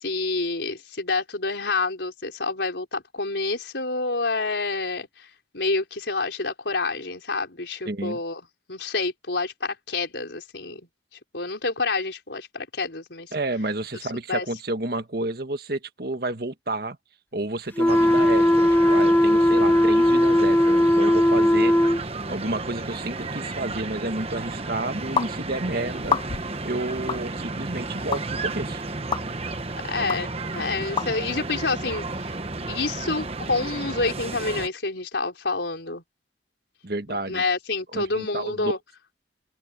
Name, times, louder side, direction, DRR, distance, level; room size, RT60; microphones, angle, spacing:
voice 1, 0.0-5.3 5.5-8.4 8.7-10.8 11.3-13.3 14.3-14.5 29.9-32.1 32.7-36.0 37.3-38.8, left 3 dB, 90° left, 4.4 m, -28 dB
voice 2, 7.9-8.2 13.3-17.0 17.3-21.8 22.3-26.2 26.6-28.8 36.8-37.4 37.9-38.7, right 2 dB, 60° right, 1.7 m, -30 dB
sound 1, 17.8-22.0, equal, 10° left, 0.9 m, -18 dB
sound 2, 17.9-34.7, right 3 dB, 35° right, 1.2 m, -33 dB
sound 3, 25.2-25.3 26.0-26.5 27.1-27.2 28.1-28.2 29.1-29.2 30.1-30.2 31.0-31.1, left 6 dB, 30° left, 0.3 m, -26 dB
open air
head